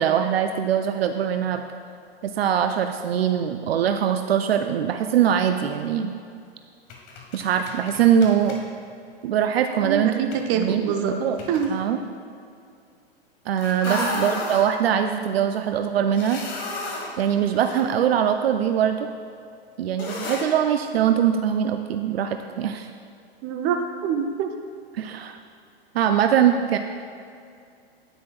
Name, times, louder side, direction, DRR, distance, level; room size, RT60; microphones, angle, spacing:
voice 1, 0.0-1.6 2.2-6.1 7.3-8.6 9.2-10.8 11.2-11.4 11.7-12.0 13.5-16.4 17.2-19.1 19.8-22.9 24.9-25.4 25.9-26.8, right 9 dB, 75° right, 6 dB, 0.5 m, -22 dB
sound 1, 6.9-8.7 10.3-10.5 11.4-11.7 13.6-14.6 16.1-17.8 18.2-18.3 20.0-20.5, left 2 dB, 40° left, 1.6 m, -33 dB
voice 2, 9.8-11.1 11.5-11.7 13.9-14.1 23.4-24.5, right 7 dB, 35° right, 5 dB, 0.8 m, -25 dB
9.9 x 9.7 x 2.4 m, 2.4 s
hypercardioid pair, 105°, 31 cm